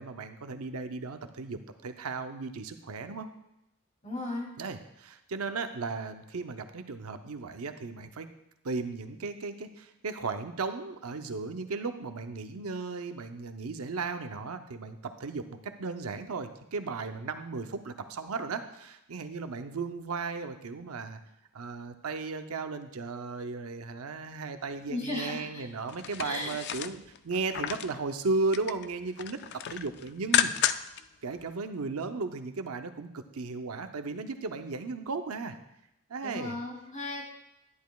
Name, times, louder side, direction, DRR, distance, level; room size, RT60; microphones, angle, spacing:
voice 1, 0.0-3.3 4.6-8.3 8.6-21.2 21.5-29.4 29.7-30.5 31.2-35.6 36.1-36.6, right 4 dB, 85° right, 8 dB, 0.6 m, -35 dB
voice 2, 4.0-4.5 24.9-25.7 26.2-26.5 36.2-37.2, left 2 dB, 35° left, -3 dB, 2.9 m, -35 dB
sound 1, 25.9-28.0 28.3-28.9 29.2-31.0 31.4-31.5, left 10 dB, 50° left, 0.3 m, -31 dB
11.0 x 10.5 x 2.3 m, 0.87 s
head